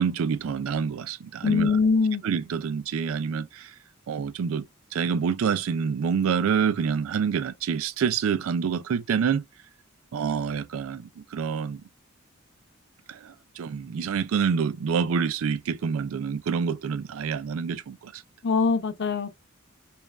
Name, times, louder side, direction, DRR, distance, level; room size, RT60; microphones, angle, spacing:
voice 1, 0.0-1.8 2.2-3.7 4.1-4.6 4.9-9.4 10.1-11.8 13.1-18.2, right 6 dB, 75° right, 0.4 m, -27 dB
voice 2, 1.4-2.2 18.4-19.3, left 4 dB, 55° left, 0.6 m, -22 dB
5.2 x 2.4 x 2.3 m
head